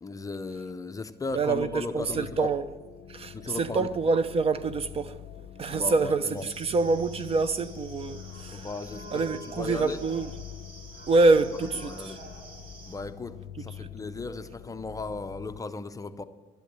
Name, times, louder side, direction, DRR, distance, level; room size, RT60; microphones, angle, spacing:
voice 1, 0.0-2.5 3.3-3.9 5.7-6.4 8.5-10.0 11.8-12.2 12.9-16.2, left 3 dB, 20° left, 0.6 m, -36 dB
sound 1, 1.3-15.6, left 11 dB, 70° left, 0.6 m, -45 dB
voice 2, 1.3-2.7 3.1-5.2 5.6-8.7 9.1-10.3 11.1-12.1 13.8-13.9, right 3 dB, 35° right, 0.6 m, -26 dB
sound 2, 6.4-13.0, right 1 dB, 60° right, 3.2 m, -47 dB
11.5 x 8.2 x 8.6 m
cardioid pair, 110°, 17 cm